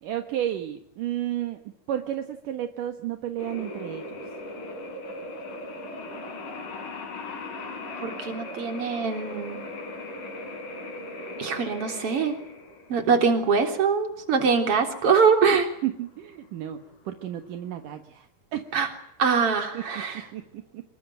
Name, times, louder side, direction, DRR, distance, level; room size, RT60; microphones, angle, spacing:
voice 1, 0.0-1.6 1.9-4.2 15.8-16.8 17.1-18.7 19.7-19.8 20.3-20.8, right 12 dB, 70° right, 7 dB, 2.9 m, -32 dB
sound 1, 3.4-17.9, left 2 dB, 65° left, 5.6 m, -38 dB
voice 2, 8.0-9.6 11.4-12.4 12.9-15.7 18.7-18.9 19.2-20.2, right 5 dB, 40° right, 6 dB, 4.2 m, -23 dB
26.5 x 22.0 x 9.2 m, 0.68 s
omnidirectional pair, 4.0 m